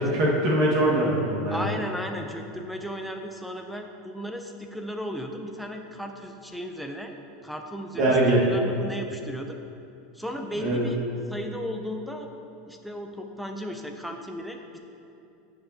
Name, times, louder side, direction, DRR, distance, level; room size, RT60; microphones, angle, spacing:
voice 1, 0.0-1.8 8.0-8.4 10.6-10.9, right 1 dB, 55° right, -4 dB, 1.6 m, -22 dB
voice 2, 1.5-7.1 7.4-9.6 10.1-11.0 11.3-12.3 12.7-14.8, equal, ahead, 4 dB, 0.5 m, -35 dB
13.5 x 6.6 x 2.8 m, 2.6 s
supercardioid pair, 135°, 0 cm